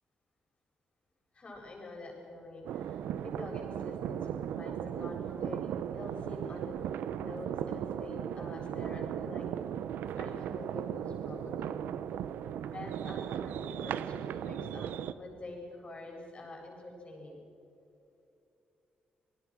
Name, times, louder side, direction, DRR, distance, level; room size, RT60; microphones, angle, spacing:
voice 1, 1.3-9.4 10.1-11.8 12.7-17.4, left 2 dB, 40° left, -1 dB, 7.8 m, -46 dB
sound 1, 2.6-15.1, right 9 dB, 90° right, 0.7 m, -37 dB
28.5 x 19.5 x 6.3 m, 2.8 s
cardioid pair, 95°, 3 cm